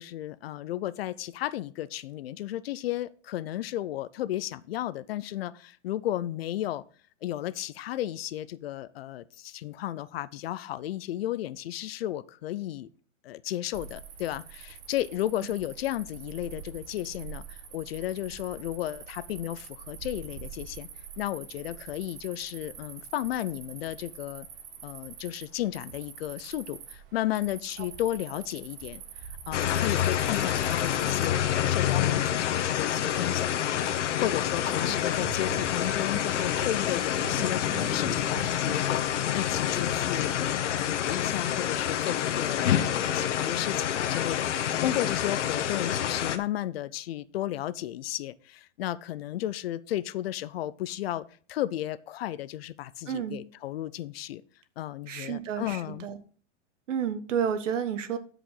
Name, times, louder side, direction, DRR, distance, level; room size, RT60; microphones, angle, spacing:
voice 1, 0.0-6.8 7.2-12.9 13.2-20.9 21.2-24.5 24.8-29.0 29.5-40.3 40.6-54.4 54.8-56.1, left 13 dB, 55° left, 17 dB, 0.6 m, -33 dB
Cricket, 13.7-32.6, right 7 dB, 50° right, 1.6 m, -45 dB
sound 1, 29.5-46.4, left 10 dB, 75° left, 1.1 m, -27 dB
sound 2, 34.8-40.4, right 6 dB, 30° right, 2.0 m, -44 dB
voice 2, 53.1-53.4 55.1-56.2 56.9-58.2, right 8 dB, 80° right, 11 dB, 1.3 m, -30 dB
12.5 x 5.1 x 3.9 m, 0.42 s
hypercardioid pair, 155°, 37 cm